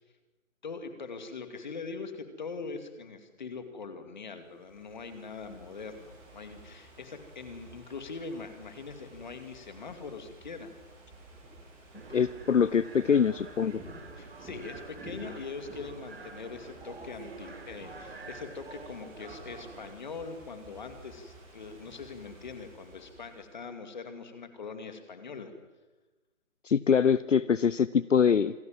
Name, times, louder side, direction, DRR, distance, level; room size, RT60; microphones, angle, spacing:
voice 1, 0.6-10.7 14.2-25.5, left 4 dB, 35° left, 8 dB, 2.6 m, -42 dB
Ocean / Fireworks, 4.3-23.6, right 1 dB, 5° right, 3.4 m, -52 dB
sound 1, 11.9-19.9, right 4 dB, 45° right, 3.1 m, -48 dB
voice 2, 12.1-13.8 26.6-28.5, left 7 dB, 65° left, 18 dB, 0.7 m, -24 dB
27.0 x 19.5 x 7.6 m, 1.2 s
figure-of-eight pair, 170°, 40 cm